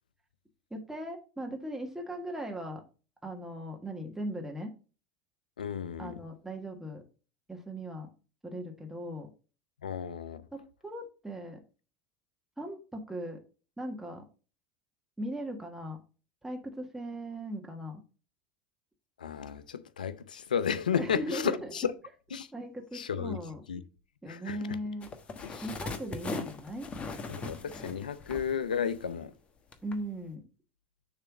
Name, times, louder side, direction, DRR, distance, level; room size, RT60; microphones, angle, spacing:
voice 1, 0.7-2.8 3.2-4.7 6.0-7.0 7.5-8.1 8.4-9.3 10.5-11.6 12.6-13.4 13.8-14.3 15.2-16.0 16.4-18.0 20.9-21.7 22.5-23.6 24.2-25.1 25.6-26.9 29.8-30.5, right 1 dB, 5° right, 1.5 m, -38 dB
voice 2, 5.6-6.2 9.8-10.4 19.2-21.9 22.3-22.5 22.9-23.4 23.7-23.8 24.3-24.8 25.4-25.6 27.3-29.3, left 7 dB, 90° left, 0.6 m, -33 dB
sound 1, 25.0-29.3 29.7-29.9, left 3 dB, 25° left, 1.2 m, -39 dB
6.8 x 3.4 x 5.9 m
hypercardioid pair, 85°, 4 cm